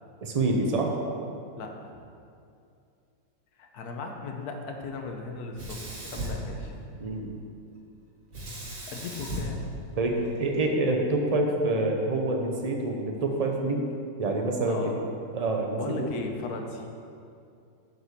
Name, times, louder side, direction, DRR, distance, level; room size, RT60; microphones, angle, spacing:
voice 1, 0.2-1.0 7.0-7.3 10.0-13.8 14.2-14.9 15.3-16.1, right 2 dB, 70° right, 1 dB, 0.3 m, -27 dB
voice 2, 1.6-1.9 3.6-6.7 8.9-9.6 14.6-15.0 15.8-16.8, left 4 dB, 65° left, 3 dB, 1.3 m, -37 dB
Sink (filling or washing), 5.5-7.2 8.3-10.6, right 1 dB, 45° right, 2.1 m, -37 dB
7.9 x 5.1 x 6.7 m, 2.5 s
omnidirectional pair, 1.8 m